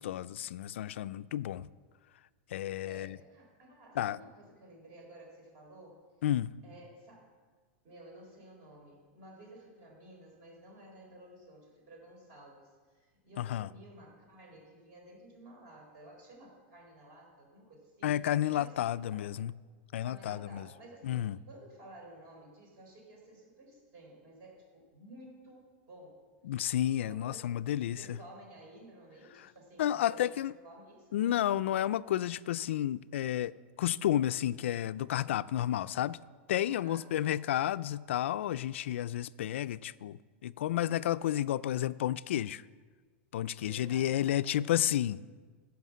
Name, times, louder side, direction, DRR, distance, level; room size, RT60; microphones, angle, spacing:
voice 1, 0.0-1.7 2.5-3.2 4.0-4.2 6.2-6.5 13.4-13.7 18.0-19.5 19.9-20.7 21.0-21.4 26.4-28.2 29.4-29.5 29.8-30.5 31.1-36.2 36.5-42.6 43.3-45.3, left 12 dB, 85° left, 0.4 m, -31 dB
voice 2, 2.8-6.0 6.6-7.3 7.8-18.2 18.5-19.3 20.0-26.2 27.0-27.5 27.8-31.3 36.8-37.4 43.6-44.5, right 1 dB, 40° right, 4.0 m, -54 dB
15.5 x 5.8 x 7.4 m
supercardioid pair, 170°, 6 cm